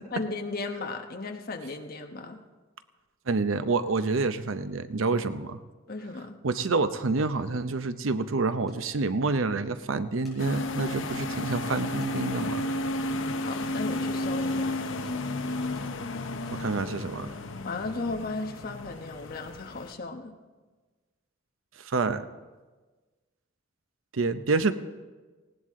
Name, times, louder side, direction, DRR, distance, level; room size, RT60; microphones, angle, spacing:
voice 1, 0.1-2.4 5.9-6.4 13.4-14.7 17.6-20.3, left 3 dB, 50° left, 5 dB, 1.2 m, -35 dB
voice 2, 3.3-5.6 6.4-12.7 16.6-17.3 21.9-22.2 24.1-24.7, right 3 dB, 85° right, 11 dB, 0.7 m, -27 dB
sound 1, 8.7-8.8 10.0-10.4 11.0-11.1 12.0-12.1 12.4-12.5 13.5-13.7 14.2-14.4 15.0-15.2 15.7-15.9 16.3-16.6, left 2 dB, ahead, 6.5 m, -55 dB
sound 2, 10.4-19.9, left 1 dB, 70° left, 0.9 m, -32 dB
18.5 x 17.5 x 3.7 m, 1.3 s
head